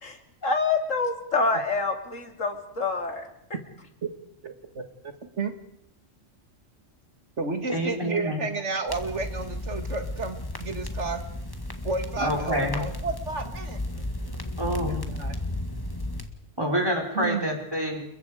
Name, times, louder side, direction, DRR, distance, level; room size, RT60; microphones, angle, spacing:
voice 1, 0.0-3.3, left 4 dB, 80° left, 5 dB, 2.9 m, -27 dB
voice 2, 4.4-4.8 5.4-5.5 7.4-11.2 11.8-14.4 14.6-15.4 17.1-17.6, right 4 dB, 65° right, 7 dB, 2.2 m, -32 dB
voice 3, 7.7-8.4 12.2-12.8 14.6-15.0 16.6-18.0, equal, 20° right, 2 dB, 4.3 m, -27 dB
sound 1, 8.9-16.3, left 1 dB, 20° left, 1.7 m, -34 dB
30.0 x 22.0 x 4.9 m, 0.79 s
omnidirectional pair, 1.3 m